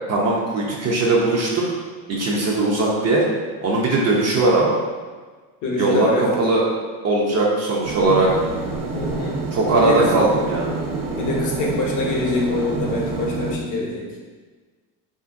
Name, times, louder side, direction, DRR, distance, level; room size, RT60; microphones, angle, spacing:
voice 1, 0.1-1.6 2.1-3.3 3.6-4.8 5.8-6.6 7.0-8.3 9.5-10.7, right 2 dB, 35° right, -3 dB, 0.5 m, -19 dB
voice 2, 5.6-6.3 8.9-9.4 9.8-10.1 11.1-14.0, left 2 dB, 45° left, -2 dB, 0.7 m, -24 dB
sound 1, 7.8-13.5, right 3 dB, 85° right, 0.7 m, -28 dB
2.6 x 2.5 x 2.5 m, 1.4 s
cardioid pair, 115°, 44 cm